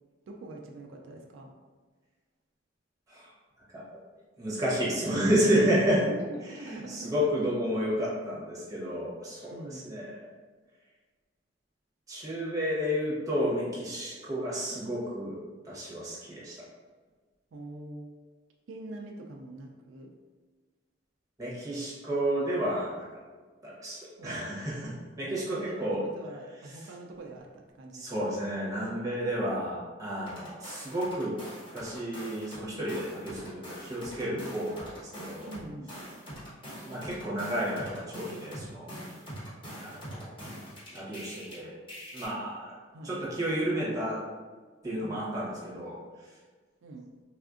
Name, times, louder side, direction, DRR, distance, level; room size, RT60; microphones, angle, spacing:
voice 1, 0.3-1.6 6.0-7.3 9.4-10.0 17.5-18.1 18.7-20.2 24.2-24.6 25.2-28.3 34.2-34.6 35.5-35.9 42.9-43.2 44.8-45.3 46.8-47.2, right 2 dB, 80° right, 1 dB, 0.3 m, -44 dB
voice 2, 4.4-6.1 6.6-10.2 12.1-16.6 21.4-23.1 23.6-26.0 27.9-31.4 31.7-35.5 36.8-38.9 39.7-40.3 40.9-41.7 42.1-42.8 43.0-44.2 44.8-46.4, equal, 15° right, -7 dB, 0.8 m, -31 dB
sound 1, 30.3-32.6 32.9-41.5 41.9-42.3, equal, 25° left, 1.1 m, -43 dB
3.5 x 2.4 x 2.4 m, 1.4 s
head